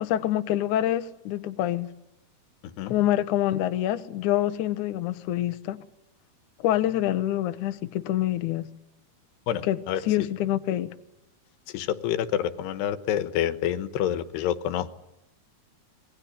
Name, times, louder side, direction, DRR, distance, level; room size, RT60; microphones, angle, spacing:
voice 1, 0.0-1.9 2.9-5.8 6.6-8.7 9.6-10.9, left 13 dB, 70° left, 2.0 m, -26 dB
voice 2, 9.5-10.0 11.7-14.9, left 10 dB, 90° left, 3.3 m, -27 dB
26.5 x 21.5 x 8.7 m
omnidirectional pair, 4.6 m